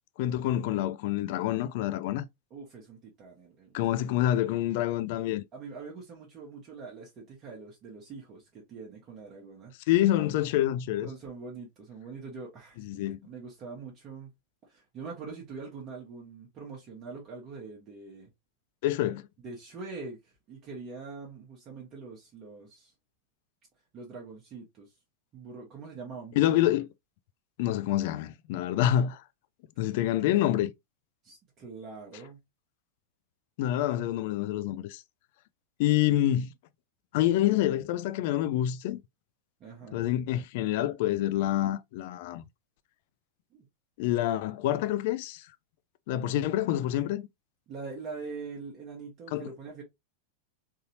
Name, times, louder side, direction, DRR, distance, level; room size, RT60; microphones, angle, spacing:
voice 1, 0.2-2.3 3.7-5.4 9.9-11.1 12.8-13.2 18.8-19.2 26.4-26.9 27.6-29.2 29.8-30.7 33.6-35.0 35.8-36.5 37.1-39.0 39.9-42.4 44.0-45.5 46.1-47.2 49.3-49.5, left 13 dB, 50° left, 0.4 m, -27 dB
voice 2, 2.5-4.1 5.5-9.7 11.0-14.3 14.7-18.3 19.4-22.9 23.9-24.9 25.3-26.7 28.6-28.8 31.2-32.4 39.6-40.0 43.5-43.7 47.7-49.8, right 4 dB, 30° right, 1.0 m, -43 dB
3.8 x 2.8 x 2.8 m
figure-of-eight pair, 90°, 0 cm